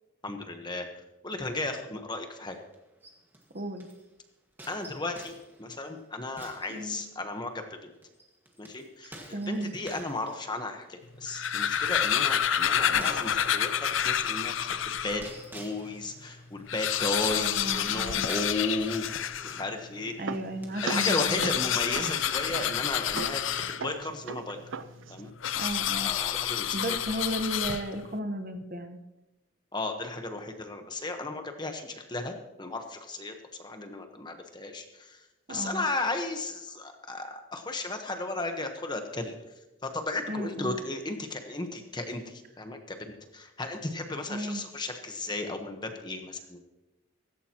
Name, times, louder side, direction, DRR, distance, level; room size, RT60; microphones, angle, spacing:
voice 1, 0.2-0.9 1.2-2.6 4.7-5.3 5.6-7.9 8.6-15.2 15.5-20.1 20.8-24.6 25.1-25.3 26.0-27.0 29.7-39.4 39.8-46.7, left 2 dB, 20° left, 5 dB, 1.2 m, -35 dB
sound 1, 2.5-4.1 4.6-7.4 8.0-21.1, right 1 dB, 10° right, 1.9 m, -50 dB
voice 2, 3.5-3.9 6.7-7.0 9.3-9.7 17.3-18.3 20.2-21.6 25.6-26.1 26.7-29.0 35.5-35.8 40.3-40.8 44.3-44.6, right 1 dB, 45° right, 7 dB, 1.2 m, -34 dB
sound 2, 11.2-15.3 15.9-16.0 16.2-16.3 16.6-19.7 20.7-24.1 25.4-28.1, left 9 dB, 80° left, 0.6 m, -29 dB
sound 3, 19.5-25.3, right 5 dB, 75° right, 0.6 m, -41 dB
16.0 x 16.0 x 3.0 m, 0.99 s
head